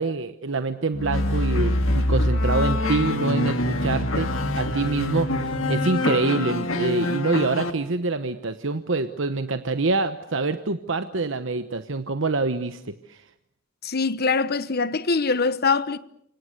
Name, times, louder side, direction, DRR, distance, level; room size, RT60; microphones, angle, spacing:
voice 1, 0.0-4.3 4.6-13.2, right 3 dB, 65° right, 1.1 m, -26 dB
sound 1, 0.9-7.7, left 1 dB, 80° left, 2.1 m, -24 dB
voice 2, 13.8-16.0, left 4 dB, 50° left, 1.1 m, -23 dB
29.0 x 25.5 x 6.7 m
head